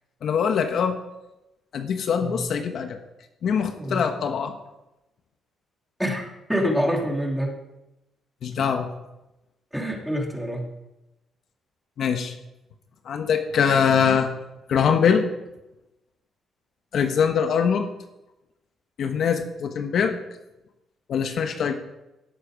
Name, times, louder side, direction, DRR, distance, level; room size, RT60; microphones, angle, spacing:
voice 1, 0.2-1.0 1.7-3.0 3.4-4.5 8.4-8.9 12.0-12.3 13.0-14.3 14.7-15.2 16.9-17.9 19.0-20.2 21.1-21.7, left 7 dB, 65° left, 6 dB, 1.3 m, -23 dB
voice 2, 3.8-4.1 6.0-7.5 8.6-8.7 9.7-10.7, equal, 5° right, 0 dB, 3.0 m, -26 dB
17.5 x 7.9 x 5.0 m, 0.95 s
cardioid pair, 90°, 0 cm